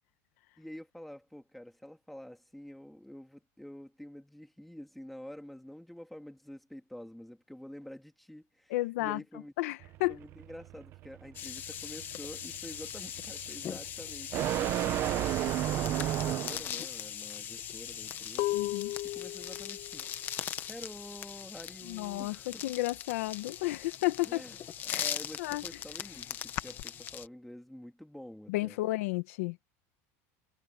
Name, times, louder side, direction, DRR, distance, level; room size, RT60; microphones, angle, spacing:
voice 1, 0.6-8.7 9.0-9.5 10.1-15.4 15.7-18.6 19.1-20.1 20.7-22.6 24.2-24.6 24.8-28.8, left 1 dB, ahead, 2.5 m, -48 dB
voice 2, 8.7-9.2 9.6-10.2 18.5-18.9 21.8-24.4 24.9-25.1 25.4-25.6 28.5-29.6, left 19 dB, 75° left, 1.2 m, -32 dB
sound 1, 9.8-16.8, right 13 dB, 30° right, 1.0 m, -33 dB
sound 2, 11.3-27.3, left 10 dB, 25° left, 1.3 m, -41 dB
sound 3, 15.5-15.6 16.0-21.7 21.9-22.4 22.7-23.9 24.3-26.8, left 17 dB, 45° left, 1.7 m, -38 dB
supercardioid pair, 175°, 8 cm